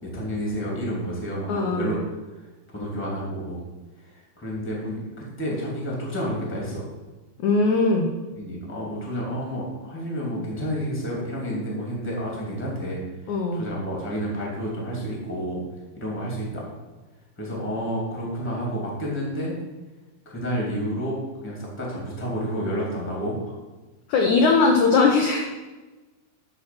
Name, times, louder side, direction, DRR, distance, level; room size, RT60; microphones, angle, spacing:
voice 1, 0.0-2.0 2.3-2.4 2.7-3.6 4.0-6.8 8.3-15.6 16.0-16.7 17.4-19.6 20.2-23.5, equal, 5° left, -3 dB, 1.9 m, -30 dB
voice 2, 1.5-1.9 7.4-8.1 13.3-13.6 24.1-25.5, left 4 dB, 75° left, 1 dB, 1.8 m, -20 dB
12.0 x 4.3 x 6.0 m, 1.2 s
omnidirectional pair, 4.4 m